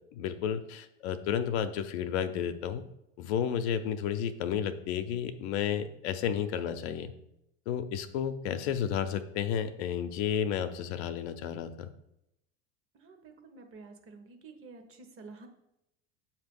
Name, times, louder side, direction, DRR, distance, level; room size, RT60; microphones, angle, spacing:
voice 1, 0.1-2.8 3.2-7.1 7.7-11.9, left 8 dB, 65° left, 9 dB, 0.7 m, -32 dB
voice 2, 12.9-15.5, right 4 dB, 40° right, 5 dB, 1.2 m, -50 dB
7.3 x 2.8 x 5.2 m, 0.82 s
hypercardioid pair, 95°, 35 cm